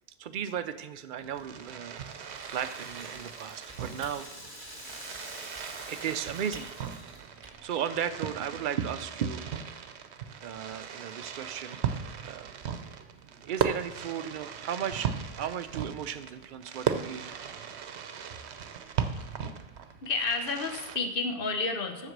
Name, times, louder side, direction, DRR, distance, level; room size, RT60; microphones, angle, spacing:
voice 1, 0.2-4.3 5.9-6.7 7.4-9.4 10.4-12.5 13.5-17.4, right 8 dB, 60° right, 11 dB, 0.7 m, -35 dB
Fireworks, 1.1-21.0, right 7 dB, 85° right, 1.0 m, -37 dB
Rattle (instrument), 1.3-7.5, equal, 20° left, 1.8 m, -48 dB
Typing, 2.4-3.4 3.7-4.2 4.6-5.3 5.5-7.6, right 1 dB, 10° right, 1.3 m, -52 dB
voice 2, 20.0-22.1, left 3 dB, 60° left, 6 dB, 1.1 m, -30 dB
7.8 x 6.6 x 6.5 m, 1.0 s
omnidirectional pair, 1.1 m